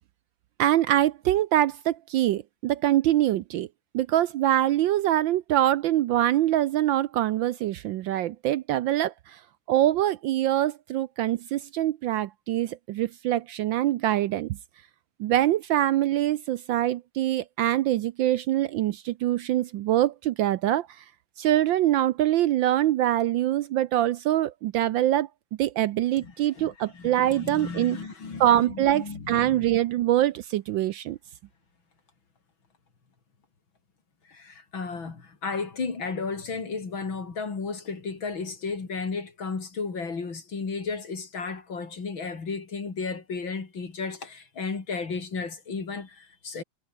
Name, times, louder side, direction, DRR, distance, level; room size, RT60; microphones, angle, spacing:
voice 1, 0.6-3.7 3.9-9.4 9.7-14.6 15.2-20.9 21.4-25.3 25.6-28.0 28.4-31.2, right 13 dB, 75° right, 1.2 m, -24 dB
voice 2, 26.2-29.7 34.3-46.6, left 4 dB, 60° left, 4.1 m, -34 dB
omnidirectional pair, 2.4 m